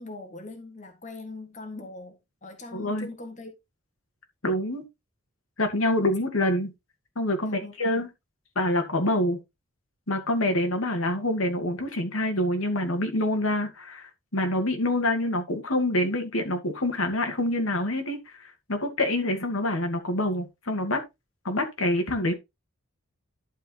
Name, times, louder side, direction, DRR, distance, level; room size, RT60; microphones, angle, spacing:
voice 1, 0.0-3.5 7.4-8.1, left 2 dB, 35° left, 1.8 m, -41 dB
voice 2, 2.7-3.1 4.4-4.8 5.6-6.7 7.2-8.1 8.6-9.4 10.1-21.0 21.4-22.3, left 1 dB, 85° left, 2.3 m, -26 dB
11.5 x 5.0 x 3.9 m
head